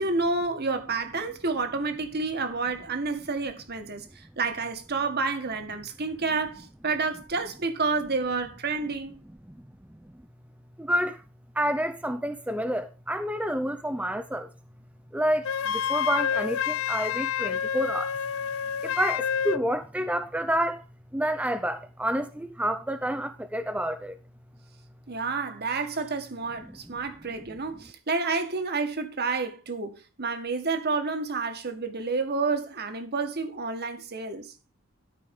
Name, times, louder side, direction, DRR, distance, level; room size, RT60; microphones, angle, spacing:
voice 1, 0.0-9.2 25.1-34.5, right 4 dB, 50° right, 1.8 m, -29 dB
voice 2, 10.8-11.2 11.6-14.5 15.1-18.1 18.8-20.8 21.1-24.2 26.6-26.8, equal, 5° right, 0.6 m, -29 dB
Wind instrument woodwind instrument, 15.4-19.6, left 8 dB, 65° left, 0.4 m, -28 dB
13.0 x 5.3 x 5.5 m
head